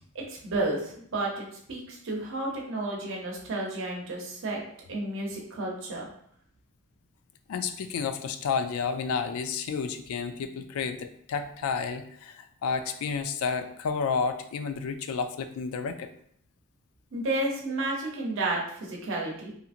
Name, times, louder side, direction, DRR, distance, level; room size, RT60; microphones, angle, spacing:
voice 1, 0.3-4.6 4.9-6.1 17.1-19.5, right 2 dB, 65° right, -2 dB, 0.7 m, -31 dB
voice 2, 7.5-16.1, left 5 dB, 90° left, 10 dB, 0.3 m, -31 dB
2.8 x 2.5 x 2.4 m, 0.65 s
head